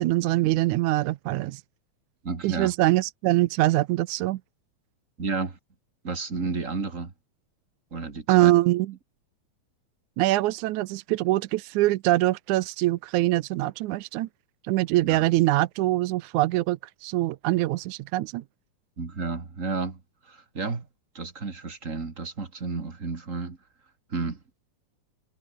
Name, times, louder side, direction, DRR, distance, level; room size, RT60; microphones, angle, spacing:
voice 1, 0.0-1.6 2.4-4.4 8.3-8.9 10.2-14.3 14.6-18.4, right 17 dB, 85° right, 2.1 m, -23 dB
voice 2, 2.2-2.7 5.2-5.6 6.0-7.1 7.9-8.5 15.0-15.3 19.0-20.9 21.1-23.6 24.1-24.4, right 4 dB, 25° right, 2.4 m, -32 dB
omnidirectional pair, 3.5 m